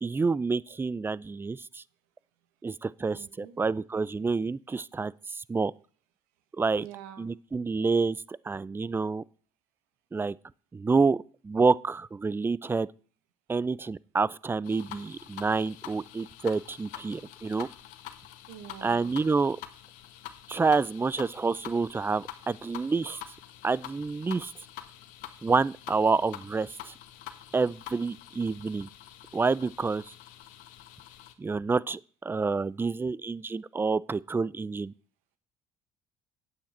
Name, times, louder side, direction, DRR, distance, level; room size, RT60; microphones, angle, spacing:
voice 1, 0.0-1.8 2.6-5.7 6.6-6.9 7.2-9.2 10.1-10.4 10.7-12.9 13.5-17.7 18.8-19.6 20.5-23.2 23.6-24.5 25.4-26.9 27.5-28.9 29.3-30.1 31.4-34.9, right 4 dB, 15° right, 0.4 m, -28 dB
voice 2, 3.1-3.6 6.8-7.3 18.5-19.2, right 10 dB, 80° right, 1.3 m, -46 dB
sound 1, 14.6-31.3, left 12 dB, 70° left, 1.1 m, -46 dB
9.4 x 8.4 x 4.3 m
hypercardioid pair, 70°, 14 cm